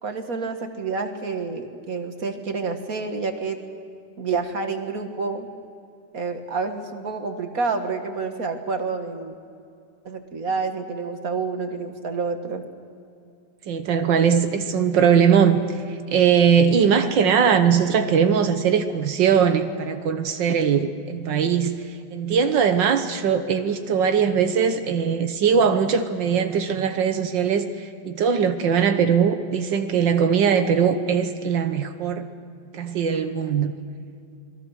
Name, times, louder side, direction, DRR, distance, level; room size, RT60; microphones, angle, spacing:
voice 1, 0.0-3.6 4.2-5.5 6.1-9.3 10.1-12.6, right 4 dB, 50° right, 6 dB, 1.9 m, -28 dB
voice 2, 13.7-15.6 16.1-21.8 22.1-32.3 32.7-33.7, right 7 dB, 80° right, 8 dB, 1.7 m, -20 dB
27.5 x 20.5 x 6.5 m, 2.5 s
omnidirectional pair, 2.0 m